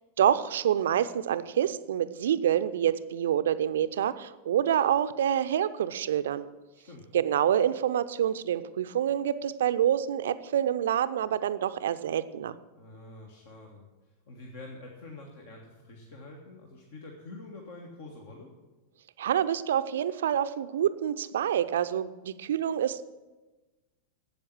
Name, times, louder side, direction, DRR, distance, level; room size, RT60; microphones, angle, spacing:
voice 1, 0.2-6.4 7.1-12.5 19.2-23.0, right 10 dB, 60° right, 13 dB, 0.5 m, -27 dB
voice 2, 12.7-18.5, left 2 dB, 55° left, 1 dB, 1.6 m, -46 dB
12.5 x 8.5 x 6.1 m, 1.2 s
figure-of-eight pair, 90°, 0 cm